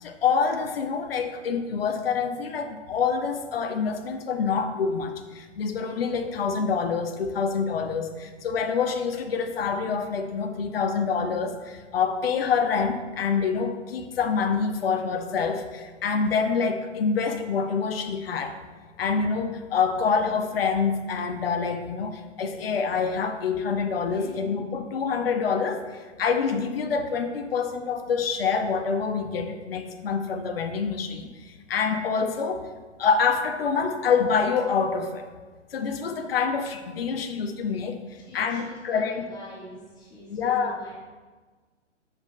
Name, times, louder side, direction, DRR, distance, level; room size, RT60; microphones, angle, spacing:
voice 1, 0.0-18.6 19.0-25.8 26.2-31.3 31.7-32.6 33.0-35.3 35.7-38.0 38.3-39.2 40.3-40.8, left 5 dB, 50° left, 6 dB, 0.7 m, -26 dB
voice 2, 24.1-24.4 38.3-40.9, left 1 dB, 10° left, -5 dB, 1.5 m, -44 dB
13.5 x 5.8 x 2.2 m, 1.4 s
figure-of-eight pair, 120°, 37 cm